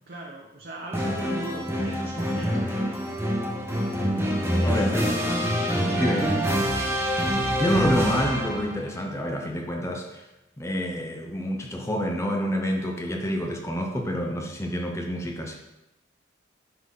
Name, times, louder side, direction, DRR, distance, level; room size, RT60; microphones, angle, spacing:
voice 1, 0.1-2.8 4.6-5.2 5.8-6.2, right 1 dB, 55° right, -3 dB, 1.0 m, -39 dB
sound 1, 0.9-8.8, equal, 15° right, 1.0 m, -26 dB
voice 2, 4.6-5.1 6.0-6.3 7.5-10.2 10.6-15.6, equal, 15° left, 2 dB, 0.7 m, -28 dB
9.7 x 4.0 x 3.8 m, 0.93 s
head